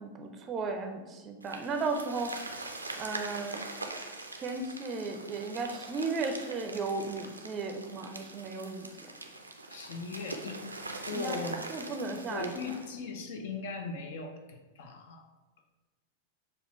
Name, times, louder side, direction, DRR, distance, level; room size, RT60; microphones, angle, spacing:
voice 1, 0.0-2.3 3.0-3.6 4.4-9.1 11.1-11.4 11.7-12.6, right 3 dB, 25° right, 4 dB, 0.5 m, -35 dB
sound 1, 1.4-12.9, right 2 dB, 80° right, 0.4 m, -43 dB
voice 2, 9.7-11.6 12.3-15.2, left 4 dB, 55° left, 5 dB, 0.5 m, -39 dB
6.4 x 2.4 x 3.0 m, 1.2 s
figure-of-eight pair, 90°, 0 cm